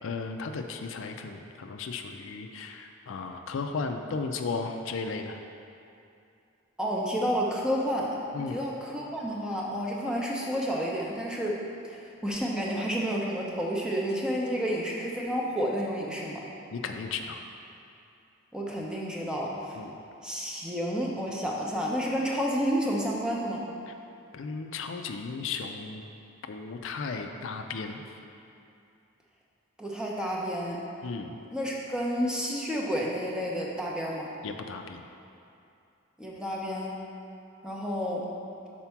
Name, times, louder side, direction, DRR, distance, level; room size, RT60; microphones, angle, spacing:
voice 1, 0.0-5.4 8.3-8.6 16.7-17.4 19.8-19.9 23.9-24.0 24.3-26.0 26.5-28.2 31.0-31.4 34.4-35.0, left 4 dB, 70° left, 5 dB, 0.4 m, -35 dB
voice 2, 6.8-8.2 8.5-11.6 11.9-16.5 18.5-19.8 20.2-23.6 29.8-30.8 31.5-34.3 36.2-37.0 37.6-38.3, equal, 5° right, -3 dB, 0.7 m, -30 dB
5.8 x 4.3 x 5.8 m, 2.7 s
head